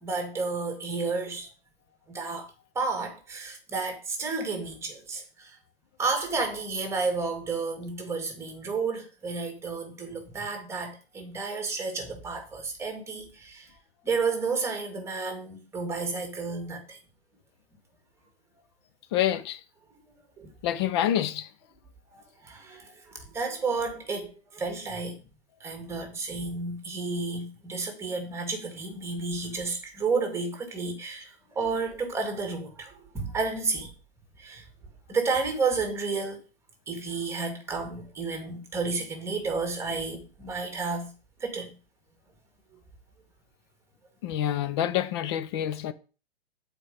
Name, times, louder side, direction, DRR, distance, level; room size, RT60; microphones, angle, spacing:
voice 1, 0.0-1.5 2.1-2.5 2.7-5.6 6.0-13.7 14.0-17.0 20.4-20.5 22.1-25.1 25.6-33.9 34.4-34.6 35.1-36.4 36.9-41.1 41.4-41.8, right 4 dB, 10° right, 1.5 m, -31 dB
voice 2, 19.1-19.6 20.6-21.5 44.2-45.9, left 11 dB, 25° left, 0.5 m, -27 dB
7.9 x 4.3 x 5.0 m
hypercardioid pair, 140°, 31 cm